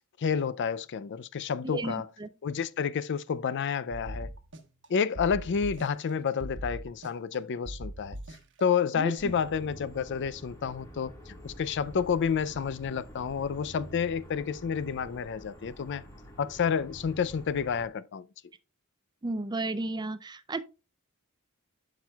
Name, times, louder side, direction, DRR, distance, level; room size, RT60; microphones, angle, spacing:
voice 1, 0.2-2.1 2.4-4.3 4.9-8.2 8.6-16.0 16.4-18.3, left 6 dB, 55° left, 0.4 m, -30 dB
voice 2, 1.7-2.3 9.0-9.1 19.2-20.6, right 2 dB, 20° right, 0.4 m, -33 dB
sound 1, 3.9-4.9 5.2-6.1 6.4-7.4 7.7-8.6, equal, 60° right, 1.1 m, -40 dB
sound 2, 9.2-17.9, right 1 dB, 15° left, 1.9 m, -48 dB
9.8 x 6.0 x 2.3 m
head